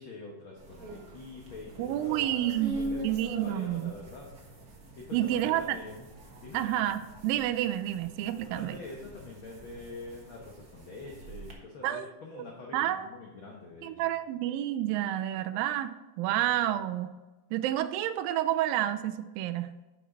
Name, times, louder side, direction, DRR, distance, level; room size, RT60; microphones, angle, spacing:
voice 1, 0.0-4.3 5.0-6.1 6.4-6.6 8.5-14.1 16.3-16.7, left 3 dB, 75° left, -2 dB, 1.1 m, -45 dB
sound 1, 0.6-11.5, right 1 dB, 50° right, 1.1 m, -43 dB
voice 2, 1.8-2.8 3.0-3.9 5.1-5.8 6.5-8.8 11.8-12.1 12.4-12.5 12.7-13.1 13.8-17.1 17.5-19.7, right 12 dB, 85° right, 11 dB, 2.3 m, -29 dB
10.0 x 6.2 x 4.0 m, 1.1 s
omnidirectional pair, 4.1 m